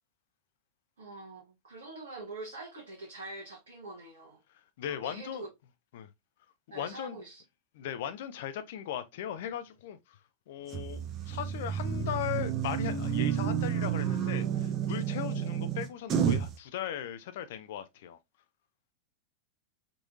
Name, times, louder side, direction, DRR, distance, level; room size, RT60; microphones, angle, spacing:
voice 1, 1.0-4.4 4.8-5.5 6.7-7.4, right 2 dB, 65° right, 1.1 m, -44 dB
voice 2, 4.5-5.5 5.9-6.1 6.7-7.2 7.8-10.2 10.5-18.2, left 10 dB, 55° left, 0.4 m, -38 dB
sound 1, 10.7-16.6, right 8 dB, 30° right, 0.6 m, -30 dB
3.7 x 3.0 x 2.4 m
figure-of-eight pair, 90°, 0 cm